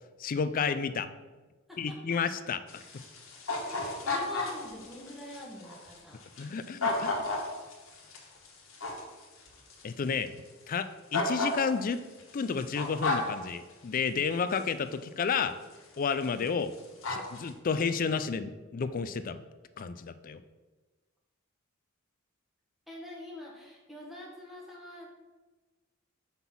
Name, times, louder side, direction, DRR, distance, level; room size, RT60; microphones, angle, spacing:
voice 1, 0.2-1.1 1.8-2.8 6.4-7.1 9.8-10.3 10.7-12.0 12.3-15.6 16.0-16.7 17.1-19.4 19.8-20.4, left 5 dB, 40° left, 12 dB, 0.4 m, -31 dB
voice 2, 1.7-2.2 3.7-6.2 16.0-16.1 22.9-25.1, left 1 dB, ahead, -3 dB, 1.4 m, -45 dB
sound 1, 2.7-9.8 10.3-10.4 11.1-13.4 14.5-14.6 15.2-15.3 15.7-15.9 16.2-16.5 16.7-17.5, left 3 dB, 70° left, 1.4 m, -33 dB
5.4 x 4.0 x 5.9 m, 1.2 s
head